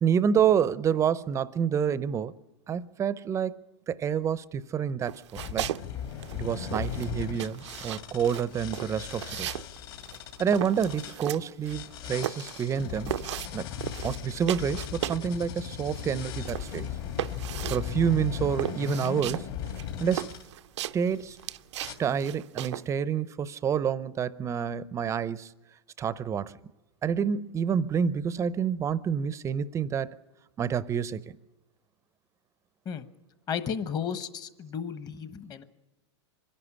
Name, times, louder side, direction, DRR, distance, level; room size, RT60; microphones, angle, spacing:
voice 1, 0.0-2.3 2.7-3.6 3.9-5.7 6.4-9.5 10.4-13.1 13.5-13.7 14.0-16.9 17.7-19.5 20.0-20.3 20.9-21.4 22.0-25.5 26.0-26.5 27.0-30.2 30.6-31.2, right 7 dB, 20° right, 0.6 m, -28 dB
sound 1, 5.0-5.9 6.1-15.3 15.6-22.9, right 13 dB, 75° right, 0.6 m, -36 dB
sound 2, 5.4-11.2 11.6-20.4 21.1-21.4 21.8-21.9, left 9 dB, 55° left, 2.6 m, -37 dB
voice 2, 33.5-35.6, left 7 dB, 25° left, 1.1 m, -33 dB
24.5 x 11.0 x 10.0 m
hypercardioid pair, 130°, 15 cm